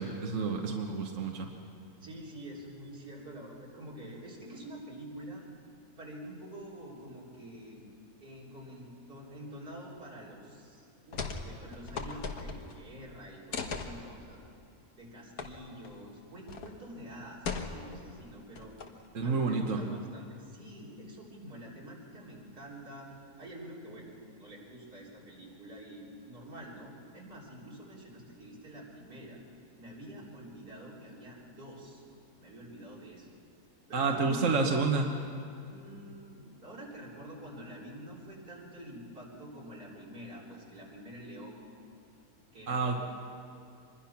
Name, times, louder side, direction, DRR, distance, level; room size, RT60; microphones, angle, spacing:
voice 1, 0.0-1.5 19.1-19.8 33.9-35.2 42.7-42.9, right 4 dB, 55° right, 2 dB, 1.6 m, -29 dB
voice 2, 2.0-5.4 6.0-7.9 8.2-14.4 15.0-18.8 19.2-23.1 23.4-24.1 24.4-29.4 29.8-32.0 32.4-33.3 33.9-34.4 35.6-41.7 42.5-43.0, right 1 dB, 85° right, -5 dB, 4.4 m, -47 dB
sound 1, 11.1-11.5 11.7-12.8 13.5-13.9 15.4-15.5 15.8-16.0 16.5-16.7 17.4-18.0 18.6-19.1, left 5 dB, 75° left, 1.8 m, -37 dB
25.0 x 21.5 x 5.9 m, 2.5 s
omnidirectional pair, 1.6 m